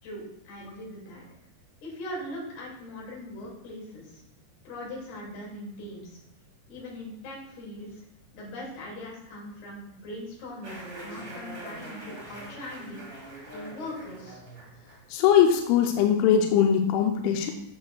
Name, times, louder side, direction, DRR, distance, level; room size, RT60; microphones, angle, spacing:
voice 1, 0.0-1.2 1.8-4.2 4.7-6.2 6.7-8.0 8.3-13.0 13.5-14.4, left 1 dB, 60° left, -4 dB, 4.1 m, -40 dB
sound 1, 10.6-16.3, right 1 dB, 35° right, 1.0 m, -44 dB
voice 2, 15.1-17.5, left 8 dB, 90° left, 4 dB, 3.0 m, -21 dB
9.4 x 6.5 x 2.3 m, 0.85 s
omnidirectional pair, 5.4 m